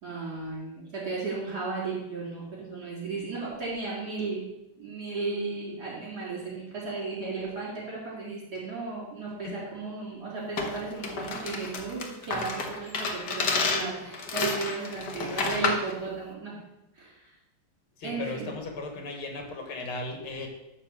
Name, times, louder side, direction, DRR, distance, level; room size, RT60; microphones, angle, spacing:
voice 1, 0.0-4.4 4.8-16.6 17.0-17.2 18.0-18.5, right 4 dB, 50° right, -7 dB, 4.4 m, -35 dB
voice 2, 9.3-9.6 18.0-20.5, left 3 dB, 75° left, 3 dB, 2.3 m, -36 dB
sound 1, 10.6-15.9, left 4 dB, 55° left, 1.6 m, -30 dB
11.5 x 4.3 x 7.0 m, 0.89 s
omnidirectional pair, 2.3 m